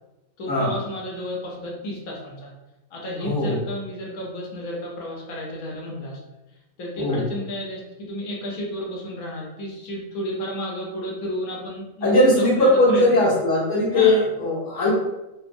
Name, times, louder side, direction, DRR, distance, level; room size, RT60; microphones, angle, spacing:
voice 1, 0.4-2.5 2.9-6.2 6.8-13.2 13.9-14.2, equal, 75° left, -2 dB, 1.3 m, -32 dB
voice 2, 3.2-3.6 7.0-7.2 12.0-14.9, left 1 dB, 60° left, -7 dB, 1.5 m, -19 dB
4.4 x 2.0 x 2.6 m, 0.98 s
omnidirectional pair, 1.5 m